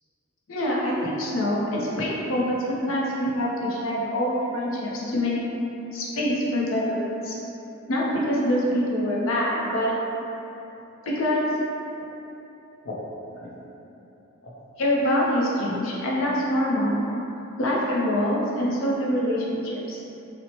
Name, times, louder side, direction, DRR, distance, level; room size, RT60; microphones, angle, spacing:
voice 1, 0.5-5.4 5.9-7.0 7.2-7.4 7.9-9.9 11.0-11.5 12.8-13.0 13.4-13.5 14.4-14.5 14.8-17.0 17.6-20.0, equal, 65° left, -4 dB, 0.5 m, -25 dB
2.8 x 2.0 x 2.9 m, 3.0 s
head